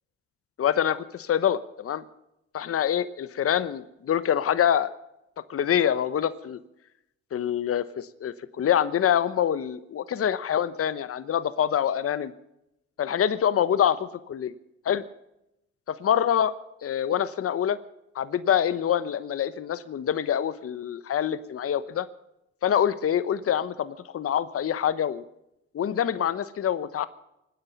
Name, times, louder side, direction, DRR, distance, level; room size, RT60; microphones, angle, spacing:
voice 1, 0.6-2.0 2.5-4.9 5.5-6.6 7.3-12.3 13.0-14.5 14.8-15.0 16.0-16.5 16.8-17.8 18.1-22.1 22.6-25.2 25.7-27.0, left 9 dB, 50° left, 14 dB, 1.0 m, -25 dB
24.5 x 10.0 x 5.3 m, 0.85 s
cardioid pair, 90°, 30 cm